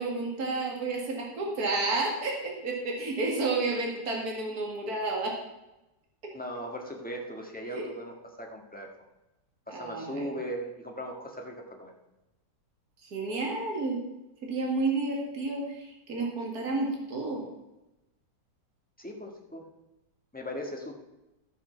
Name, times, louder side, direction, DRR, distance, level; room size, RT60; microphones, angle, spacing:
voice 1, 0.0-5.4 7.7-7.8 9.7-10.3 13.0-14.0 14.5-17.4, right 3 dB, 55° right, -1 dB, 2.5 m, -31 dB
voice 2, 6.3-9.0 9.7-11.9 19.0-19.7 20.3-20.9, equal, 5° left, 0 dB, 1.6 m, -38 dB
14.5 x 5.9 x 5.8 m, 0.97 s
omnidirectional pair, 1.9 m